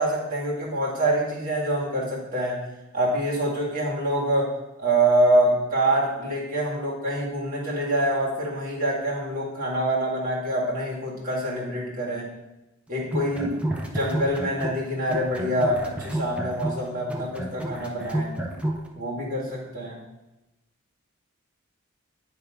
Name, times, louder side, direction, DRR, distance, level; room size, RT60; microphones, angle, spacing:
voice 1, 0.0-2.6 2.9-12.3 12.9-18.4 18.9-20.0, right 1 dB, 40° right, -4 dB, 2.0 m, -25 dB
sound 1, 13.0-14.8 15.1-18.8, right 1 dB, 5° right, 0.6 m, -30 dB
9.0 x 3.4 x 4.9 m, 1.0 s
head